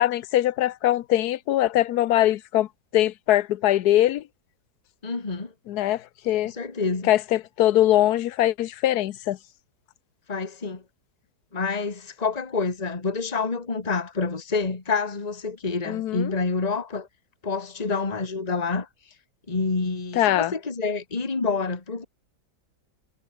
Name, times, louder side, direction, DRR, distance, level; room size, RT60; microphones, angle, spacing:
voice 1, 0.0-2.7 2.9-4.2 5.7-6.5 7.1-9.4 15.9-16.3 20.2-20.5, left 13 dB, 70° left, 1.2 m, -22 dB
voice 2, 5.0-5.5 6.4-7.1 10.3-10.8 11.5-17.1 17.4-18.9 19.5-22.1, left 4 dB, 25° left, 1.9 m, -28 dB
omnidirectional pair, 1.9 m